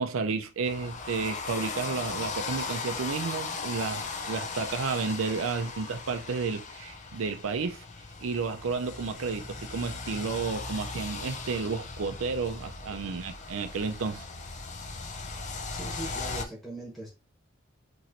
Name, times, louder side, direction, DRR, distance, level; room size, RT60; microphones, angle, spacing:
voice 1, 0.0-7.8 8.2-14.3, right 4 dB, 90° right, 0.5 m, -32 dB
sound 1, 0.6-16.4, left 4 dB, 40° left, 0.5 m, -38 dB
voice 2, 15.7-17.1, right 1 dB, ahead, 1.2 m, -40 dB
3.0 x 2.8 x 2.6 m
head